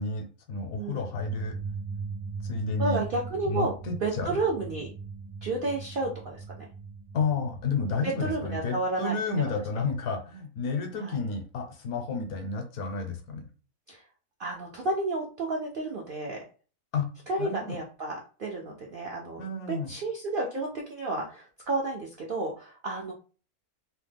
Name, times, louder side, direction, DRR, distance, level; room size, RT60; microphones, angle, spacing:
voice 1, 0.0-1.5 2.4-3.0 3.5-4.4 7.1-13.4 16.9-17.1 17.4-17.8 19.4-19.9, left 4 dB, 70° left, 4 dB, 1.1 m, -31 dB
voice 2, 0.7-1.1 2.8-3.7 4.0-4.9 5.4-6.4 8.0-9.5 11.0-11.2 13.9-14.0 14.4-16.4 17.3-23.1, right 2 dB, 70° right, -1 dB, 0.5 m, -31 dB
sound 1, 1.1-8.4, right 5 dB, 90° right, 1.2 m, -39 dB
3.0 x 2.0 x 3.3 m, 0.37 s
omnidirectional pair, 1.6 m